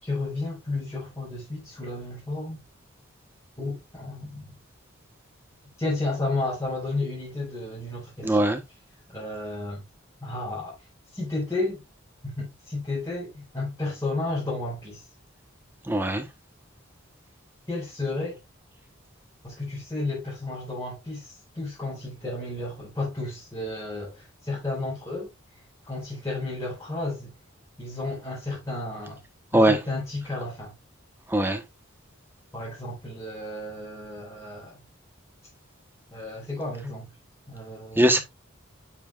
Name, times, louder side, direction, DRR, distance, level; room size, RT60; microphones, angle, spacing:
voice 1, 0.0-2.6 3.6-4.5 5.8-8.4 9.1-9.8 10.2-10.8 11.1-11.8 12.2-15.0 17.7-18.4 19.4-25.3 25.9-27.3 27.8-29.2 29.5-30.7 32.5-34.8 36.1-37.1 37.5-38.0, left 2 dB, 15° left, 4.6 m, -32 dB
voice 2, 8.2-8.6 15.9-16.3 29.5-29.8 31.3-31.6 38.0-38.2, right 1 dB, 10° right, 1.1 m, -21 dB
8.6 x 7.2 x 2.4 m
head